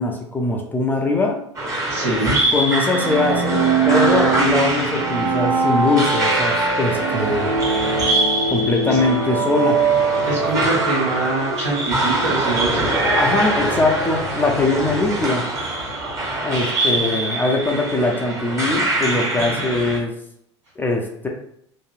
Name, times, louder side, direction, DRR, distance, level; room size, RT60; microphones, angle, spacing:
voice 1, 0.0-1.4 2.5-7.5 8.5-9.8 13.1-15.4 16.4-20.1 20.8-21.3, left 2 dB, 15° left, 1 dB, 0.4 m, -21 dB
sound 1, 1.5-20.0, right 1 dB, 20° right, 0.9 m, -24 dB
voice 2, 1.9-2.4 8.9-9.0 10.2-12.9 17.0-17.1, right 2 dB, 75° right, -5 dB, 1.2 m, -24 dB
sound 2, 2.9-11.6, right 4 dB, 50° right, 0.9 m, -22 dB
2.9 x 2.5 x 2.3 m, 0.70 s
figure-of-eight pair, 75°, 15 cm